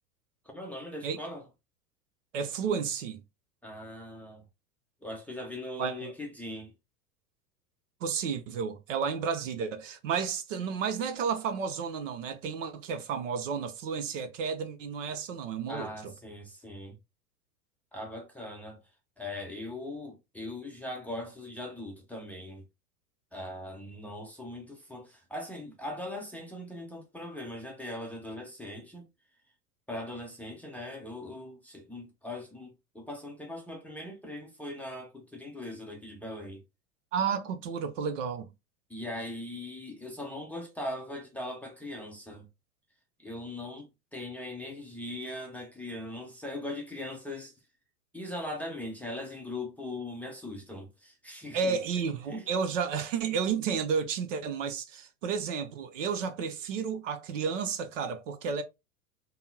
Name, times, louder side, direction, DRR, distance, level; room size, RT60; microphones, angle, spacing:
voice 1, 0.5-1.5 3.6-4.4 5.0-6.7 15.7-17.0 17.9-18.8 19.2-22.6 23.3-29.1 29.9-36.6 38.9-42.5 43.2-47.5 48.1-51.8 52.3-52.5, left 1 dB, 5° left, 0.6 m, -40 dB
voice 2, 2.3-3.2 5.8-6.1 8.0-15.9 37.1-38.5 51.5-58.6, right 6 dB, 55° right, 0.7 m, -32 dB
5.3 x 2.1 x 2.7 m
figure-of-eight pair, 90°, 46 cm